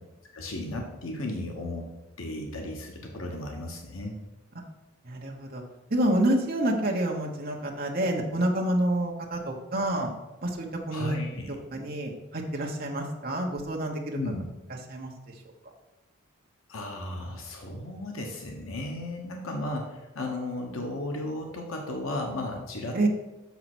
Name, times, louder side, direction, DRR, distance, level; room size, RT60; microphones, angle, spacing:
voice 1, 0.3-1.9 2.2-4.2 10.9-11.5 14.1-14.4 16.7-23.1, left 1 dB, 75° left, 2 dB, 1.2 m, -35 dB
voice 2, 5.0-5.6 5.9-10.1 10.4-11.2 11.7-14.2 14.9-15.4 22.9-23.1, right 1 dB, 45° right, 0 dB, 1.2 m, -28 dB
6.6 x 5.8 x 6.0 m, 1.0 s
head